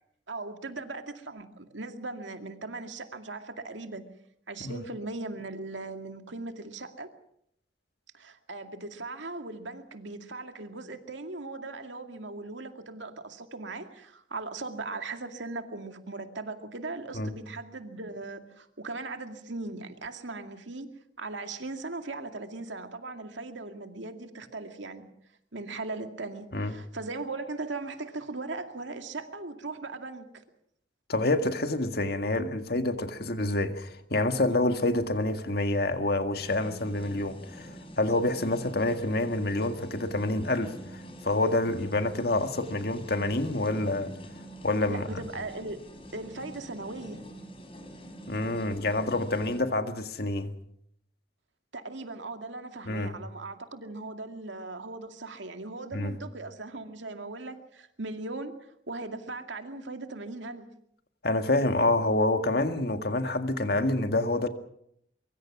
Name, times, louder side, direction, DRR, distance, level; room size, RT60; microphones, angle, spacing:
voice 1, 0.3-4.0 4.5-7.1 8.1-20.9 21.2-25.0 25.5-30.4 44.9-45.9 46.1-47.2 51.7-60.7, right 3 dB, 80° right, 2.3 m, -39 dB
voice 2, 31.1-44.1 44.6-45.1 48.3-50.5 52.9-53.1 55.9-56.1 61.2-64.5, left 2 dB, 55° left, 1.9 m, -27 dB
sound 1, 36.4-49.6, equal, 30° left, 4.4 m, -46 dB
24.0 x 23.5 x 6.2 m
head